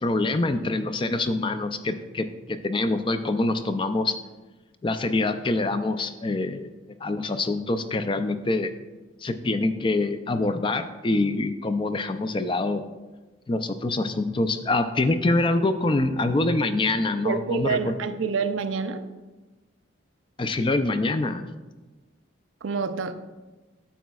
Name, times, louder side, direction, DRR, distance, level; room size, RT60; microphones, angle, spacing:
voice 1, 0.0-4.2 4.8-6.7 7.0-8.7 9.2-12.8 13.5-17.9 20.4-21.4, left 2 dB, 25° left, 9 dB, 0.4 m, -25 dB
voice 2, 17.2-19.1 22.6-23.1, right 5 dB, 85° right, 9 dB, 0.5 m, -27 dB
10.0 x 7.4 x 2.3 m, 1.2 s
head